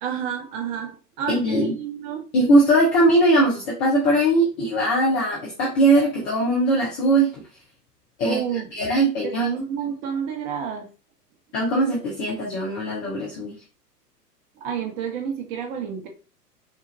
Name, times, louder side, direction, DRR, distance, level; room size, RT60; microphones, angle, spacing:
voice 1, 0.0-2.3 8.2-8.7 9.2-10.9 14.6-16.1, right 8 dB, 35° right, 3 dB, 1.1 m, -29 dB
voice 2, 1.3-1.8 2.3-7.3 8.2-8.4 8.7-9.5 11.5-13.6, right 1 dB, 15° left, -3 dB, 0.4 m, -20 dB
5.7 x 2.4 x 3.0 m, 0.34 s
figure-of-eight pair, 105°, 48 cm